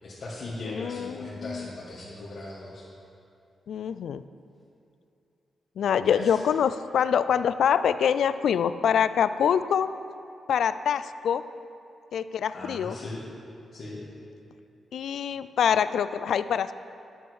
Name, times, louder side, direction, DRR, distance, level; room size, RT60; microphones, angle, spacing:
voice 1, 0.0-2.9 6.0-6.4 12.5-13.2 13.7-14.0, left 2 dB, 55° left, -7 dB, 1.9 m, -38 dB
voice 2, 0.6-1.7 3.7-4.2 5.8-9.9 10.5-11.4 12.1-13.0 14.9-16.7, left 8 dB, 80° left, 13 dB, 0.3 m, -25 dB
11.0 x 8.4 x 4.8 m, 2.6 s
cardioid pair, 75°, 0 cm